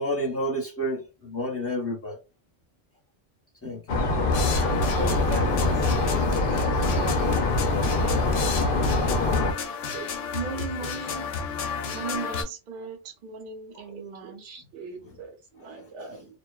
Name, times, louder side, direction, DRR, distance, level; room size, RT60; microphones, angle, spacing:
voice 1, 0.0-2.2 3.6-3.8 4.1-4.2, equal, 15° left, 0.6 m, -30 dB
sound 1, 3.9-9.5, left 2 dB, 60° left, 0.7 m, -24 dB
sound 2, 4.3-12.4, left 6 dB, 85° left, 0.9 m, -33 dB
voice 2, 4.9-7.4 9.9-10.1 10.5-10.9 13.9-16.2, right 3 dB, 75° right, 0.9 m, -39 dB
voice 3, 10.3-11.3 11.9-13.0 13.2-14.4, right 5 dB, 55° right, 0.5 m, -36 dB
2.6 x 2.1 x 2.2 m
omnidirectional pair, 1.2 m